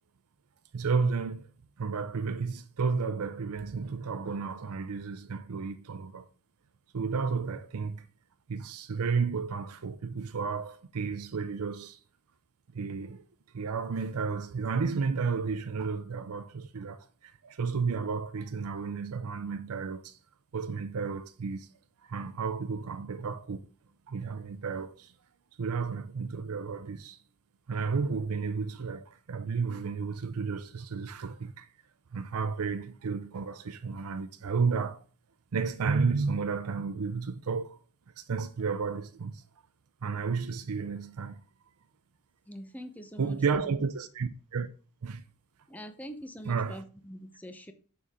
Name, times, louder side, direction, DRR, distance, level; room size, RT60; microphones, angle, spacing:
voice 1, 0.7-1.5 1.8-6.3 6.9-8.1 8.5-12.0 12.7-13.2 13.5-20.2 20.5-21.7 22.0-23.7 24.1-25.1 25.6-27.2 27.7-31.7 32.1-35.0 35.5-37.8 38.2-39.4 40.0-41.4 43.2-44.7 45.0-45.2 46.5-46.8, right 5 dB, 75° right, 0.5 m, -32 dB
voice 2, 42.5-43.6 45.7-47.7, equal, 5° left, 0.7 m, -44 dB
6.8 x 6.6 x 3.6 m
head